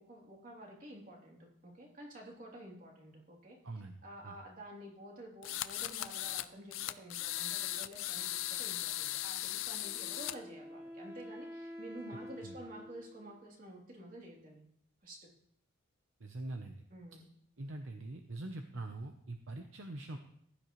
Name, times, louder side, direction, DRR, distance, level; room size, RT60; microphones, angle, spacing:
voice 1, 0.1-3.6 4.0-14.6 15.0-15.3 16.9-17.3, right 1 dB, 40° right, -2 dB, 3.1 m, -50 dB
voice 2, 3.6-4.0 4.2-4.4 12.4-12.6 16.2-16.8 17.6-20.2, right 2 dB, 60° right, 5 dB, 0.8 m, -43 dB
sound 1, 5.4-6.5 6.7-10.3, left 14 dB, 65° left, 0.5 m, -38 dB
Wind instrument woodwind instrument, 9.8-13.4, equal, 10° right, 3.5 m, -48 dB
15.5 x 11.5 x 3.2 m, 0.72 s
head